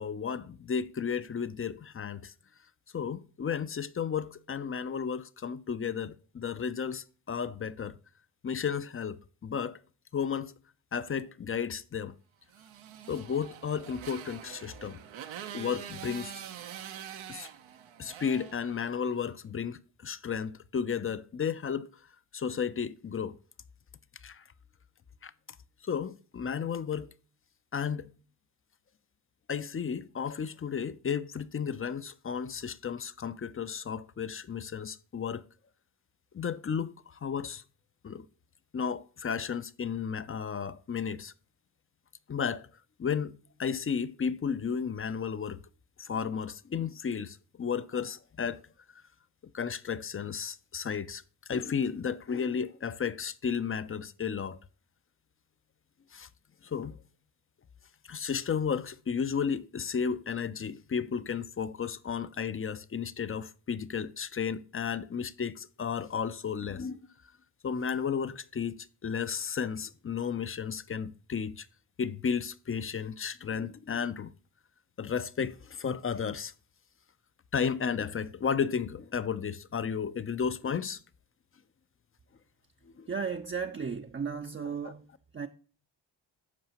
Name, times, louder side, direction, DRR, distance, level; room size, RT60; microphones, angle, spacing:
voice 1, 0.0-2.3 2.9-7.9 8.4-9.8 10.1-10.5 10.9-12.1 13.1-15.0 15.5-16.4 17.3-17.5 18.0-21.9 22.3-23.4 24.2-24.4 25.2-25.3 25.8-27.1 27.7-28.1 29.5-35.4 36.3-37.6 38.0-38.3 38.7-41.3 42.3-42.7 43.0-45.6 46.0-48.6 48.9-49.0 49.5-51.2 51.5-54.6 56.1-56.3 56.6-57.0 58.1-67.1 67.6-71.7 72.0-74.3 75.0-76.5 77.5-81.0 82.9-83.1 84.8-84.9, left 6 dB, 30° left, 0.5 m, -33 dB
Motorcycle, 12.5-19.2, right 9 dB, 75° right, 0.8 m, -45 dB
voice 2, 83.1-85.1 85.3-85.5, right 6 dB, 25° right, 0.6 m, -35 dB
13.5 x 4.7 x 2.9 m
supercardioid pair, 50°, 48 cm